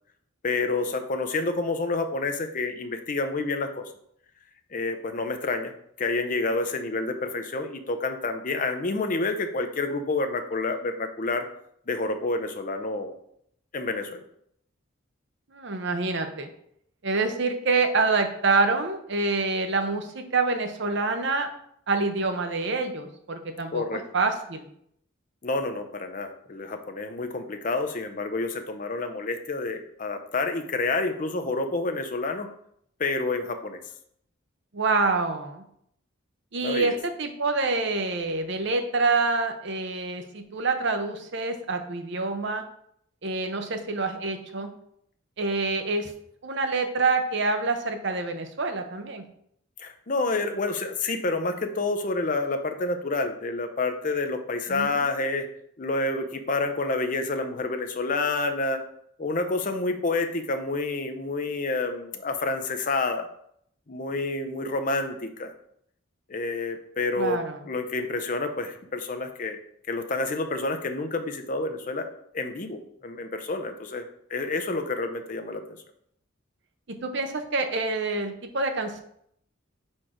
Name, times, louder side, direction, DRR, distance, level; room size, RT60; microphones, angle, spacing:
voice 1, 0.4-3.8 4.7-5.7 6.0-11.4 11.9-13.1 13.7-14.2 23.7-24.0 25.4-32.5 33.0-33.8 36.6-37.0 49.8-55.5 55.8-58.8 59.2-63.3 63.9-65.5 66.3-69.6 69.9-72.1 72.3-75.8, left 3 dB, 40° left, 7 dB, 0.6 m, -29 dB
voice 2, 15.5-16.5 17.0-21.5 21.9-24.7 34.7-35.6 36.5-42.6 43.2-44.7 45.4-46.1 46.4-49.3 54.7-55.1 67.2-67.6 76.9-79.0, right 3 dB, 60° right, 6 dB, 0.7 m, -26 dB
4.4 x 4.4 x 4.9 m, 0.70 s
head